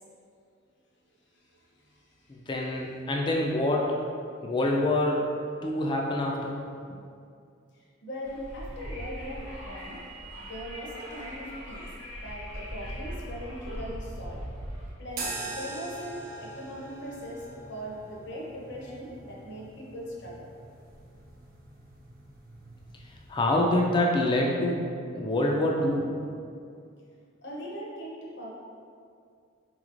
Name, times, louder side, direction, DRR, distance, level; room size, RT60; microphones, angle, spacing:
voice 1, 1.3-2.4 7.7-10.0 10.4-11.9 12.2-14.4 15.0-20.5 27.4-28.5, equal, 55° left, -4 dB, 0.7 m, -40 dB
voice 2, 2.3-4.0 4.4-5.3 5.6-6.6 23.3-24.9 25.1-26.1, left 1 dB, 25° left, -1 dB, 0.3 m, -26 dB
Wind, 8.2-14.9, equal, 80° left, 1.2 m, -40 dB
sound 1, 15.1-23.6, right 2 dB, 45° right, 0.4 m, -43 dB
4.0 x 3.0 x 2.5 m, 2.3 s
head